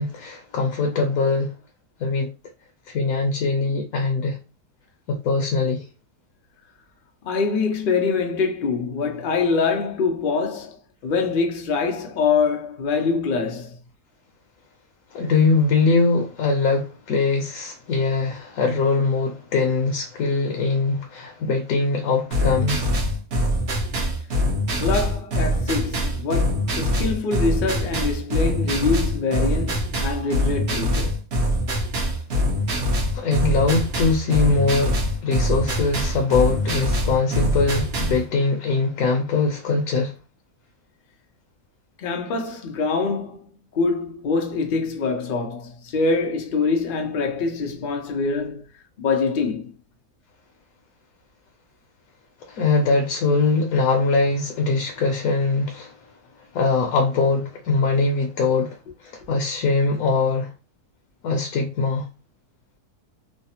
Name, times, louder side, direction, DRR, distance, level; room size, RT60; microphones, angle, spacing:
voice 1, 0.0-1.5 2.0-2.3 2.9-4.4 5.1-5.8 15.1-22.9 33.1-40.2 52.4-56.0 56.5-60.5 61.2-62.1, left 3 dB, 70° left, 1.0 m, -22 dB
voice 2, 7.2-13.8 24.8-31.2 42.0-43.5 43.7-48.7 49.0-49.7, left 4 dB, 85° left, 0.4 m, -24 dB
sound 1, 22.3-38.2, equal, 50° right, 0.8 m, -24 dB
3.2 x 2.0 x 2.7 m
omnidirectional pair, 1.7 m